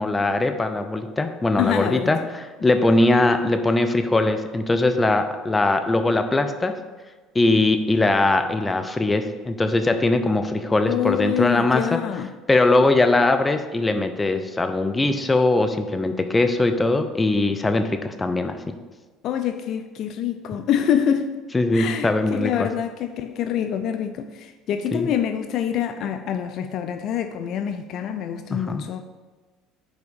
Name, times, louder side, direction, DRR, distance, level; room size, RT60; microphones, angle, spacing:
voice 1, 0.0-6.8 7.3-12.0 12.5-18.6 21.5-22.7 24.9-25.1 28.5-28.8, left 2 dB, 20° left, 0.6 m, -21 dB
voice 2, 1.5-2.1 10.9-12.3 19.2-21.3 21.7-29.0, left 9 dB, 55° left, 0.4 m, -26 dB
5.0 x 4.6 x 5.3 m
hypercardioid pair, 70°, 0 cm